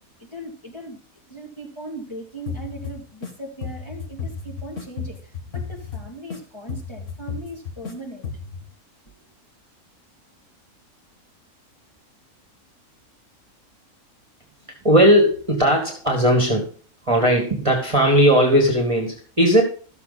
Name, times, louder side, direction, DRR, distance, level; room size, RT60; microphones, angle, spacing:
voice 1, 0.3-1.0 1.3-8.3, right 1 dB, 20° left, -2 dB, 2.5 m, -38 dB
sound 1, 2.5-3.3 3.6-6.4 6.7-7.9 8.2-8.6, left 5 dB, 55° left, 1.9 m, -33 dB
voice 2, 14.8-16.7 17.1-19.6, equal, 20° right, 1 dB, 1.9 m, -17 dB
13.0 x 7.1 x 4.1 m, 0.40 s
omnidirectional pair, 1.5 m